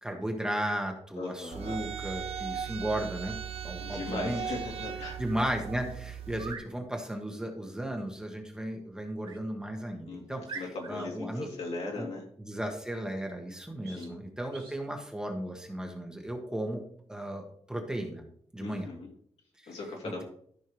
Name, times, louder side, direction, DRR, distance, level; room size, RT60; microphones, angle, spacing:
voice 1, 0.0-3.3 3.6-4.4 5.2-10.6 10.9-11.5 12.0-12.1 12.4-16.8 17.1-18.2 18.5-18.9 19.6-19.8 20.0-20.2, right 1 dB, 5° right, 2 dB, 1.2 m, -35 dB
voice 2, 1.2-1.8 3.8-5.2 10.1-12.2 13.9-14.2 18.6-19.1 19.7-20.2, left 3 dB, 70° left, -1 dB, 2.7 m, -38 dB
sound 1, 1.5-6.5, right 8 dB, 65° right, 0.9 m, -38 dB
sound 2, 6.3-6.7 9.2-9.4 9.9-10.0 10.5-11.1 13.8-14.1 14.5-14.8, right 5 dB, 50° right, 2.2 m, -43 dB
14.0 x 5.5 x 3.1 m, 0.63 s
wide cardioid pair, 150°, 11 cm